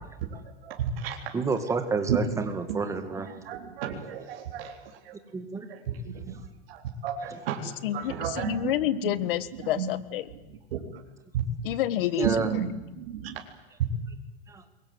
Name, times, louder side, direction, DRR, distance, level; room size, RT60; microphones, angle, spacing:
voice 1, 0.7-1.2 1.7-1.8 2.1-2.2 2.7-2.8 3.2-4.7 5.1-5.2 5.7-6.4 6.7-7.6 7.9-8.7 9.0-9.1 9.8-9.9 10.7-10.9 11.3-11.4 12.2-13.3, right 8 dB, 65° right, 1 dB, 3.9 m, -32 dB
voice 2, 1.3-3.3 5.3-5.7 12.2-12.5 14.5-14.6, right 4 dB, 10° right, 8 dB, 1.9 m, -29 dB
voice 3, 7.8-10.3 11.6-12.3, left 13 dB, 60° left, 15 dB, 1.6 m, -28 dB
27.0 x 22.5 x 7.9 m, 1.1 s
supercardioid pair, 170°, 31 cm